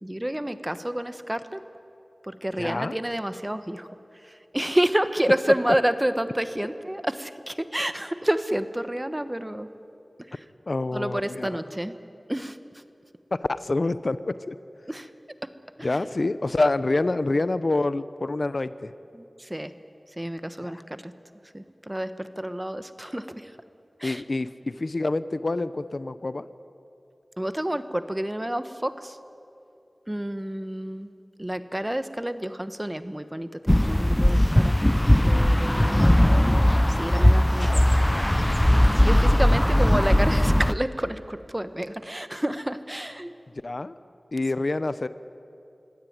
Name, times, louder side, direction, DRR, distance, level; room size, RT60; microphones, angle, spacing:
voice 1, 0.0-1.6 2.2-3.9 4.2-9.7 10.3-10.4 10.9-11.9 12.3-12.6 14.9-15.1 15.8-16.0 19.1-19.7 20.2-21.1 21.5-23.5 24.0-24.2 27.4-29.2 30.1-31.1 31.4-34.8 35.2-36.1 36.9-37.8 38.9-43.3, right 1 dB, 15° right, 11 dB, 1.2 m, -29 dB
voice 2, 2.6-2.9 10.7-11.6 13.3-14.6 15.8-18.9 20.6-20.7 24.0-24.5 24.8-26.4 43.6-44.0 44.3-45.1, left 2 dB, 60° left, 14 dB, 0.7 m, -27 dB
sound 1, 33.7-40.7, left 1 dB, 15° left, 0.6 m, -19 dB
24.5 x 16.5 x 9.4 m, 2.7 s
wide cardioid pair, 50°, 0 cm